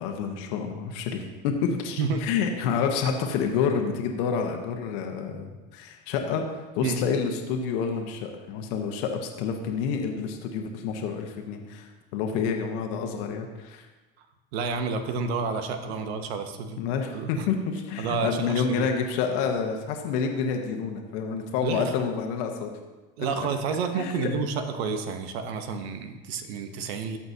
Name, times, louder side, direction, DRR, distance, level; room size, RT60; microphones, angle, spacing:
voice 1, 0.0-13.9 16.8-22.7 24.0-24.3, left 6 dB, 75° left, 3 dB, 1.1 m, -28 dB
voice 2, 14.5-16.8 17.1-17.5 18.0-18.9 21.6-21.9 23.2-27.2, right 5 dB, 85° right, 7 dB, 0.9 m, -30 dB
14.0 x 5.9 x 2.8 m, 1.2 s
supercardioid pair, 105°, 30 cm